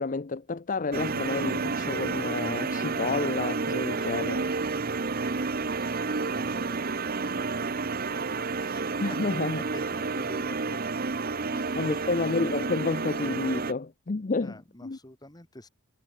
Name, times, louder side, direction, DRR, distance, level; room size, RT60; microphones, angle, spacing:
voice 1, 0.0-4.5 9.0-9.6 11.5-15.0, left 3 dB, 40° left, 0.5 m, -30 dB
sound 1, 0.9-13.7, right 4 dB, 45° right, 0.9 m, -30 dB
voice 2, 5.4-5.8 6.3-7.8 8.1-9.2 9.5-10.8 11.6-12.1 14.4-15.7, left 1 dB, 20° left, 1.8 m, -48 dB
head